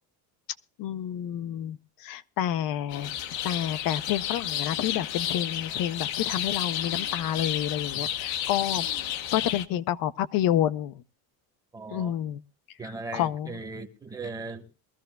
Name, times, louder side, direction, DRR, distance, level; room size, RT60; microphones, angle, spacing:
voice 1, 0.8-3.1 3.4-8.9 9.3-10.9 11.9-12.4 12.8-13.5, left 11 dB, 55° left, 0.6 m, -29 dB
sound 1, 2.9-9.7, left 11 dB, 80° left, 1.1 m, -31 dB
voice 2, 11.7-12.1 12.8-14.7, right 3 dB, 10° right, 1.1 m, -38 dB
22.5 x 14.0 x 2.2 m
cardioid pair, 155°, 43 cm